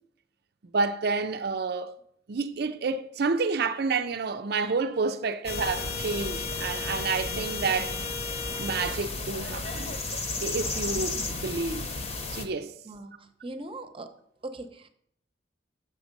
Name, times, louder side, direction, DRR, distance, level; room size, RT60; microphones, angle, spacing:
voice 1, 0.7-1.9 2.3-8.0 8.6-10.0 10.4-11.9 12.3-12.7, right 4 dB, 60° right, 0.5 m, -29 dB
sound 1, 5.4-12.4, left 3 dB, 35° left, 1.0 m, -33 dB
voice 2, 12.8-14.1 14.4-14.9, right 2 dB, 30° right, 0.8 m, -40 dB
7.1 x 6.9 x 5.2 m
head